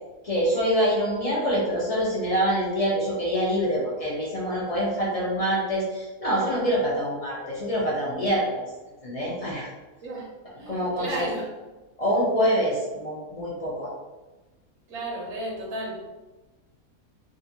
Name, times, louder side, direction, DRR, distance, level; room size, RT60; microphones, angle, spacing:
voice 1, 0.2-8.6 9.0-9.7 10.7-11.3 12.0-13.9, equal, 55° left, -6 dB, 0.4 m, -25 dB
voice 2, 10.6-11.5 14.9-16.0, right 1 dB, 90° right, -3 dB, 1.2 m, -33 dB
2.8 x 2.3 x 2.7 m, 1.2 s
omnidirectional pair, 1.5 m